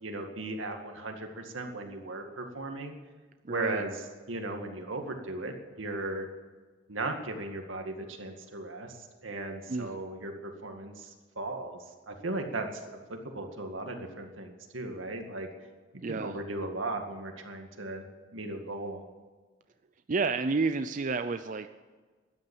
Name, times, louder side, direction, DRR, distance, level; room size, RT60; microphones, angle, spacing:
voice 1, 0.0-3.0 3.5-3.9 4.3-6.3 6.9-11.8 12.1-15.5 16.1-19.0, right 2 dB, 85° right, 4 dB, 2.0 m, -37 dB
voice 2, 3.4-3.8 9.7-10.0 16.0-16.4 20.1-21.7, right 4 dB, 40° right, 9 dB, 0.5 m, -30 dB
13.0 x 9.9 x 8.8 m, 1.4 s
head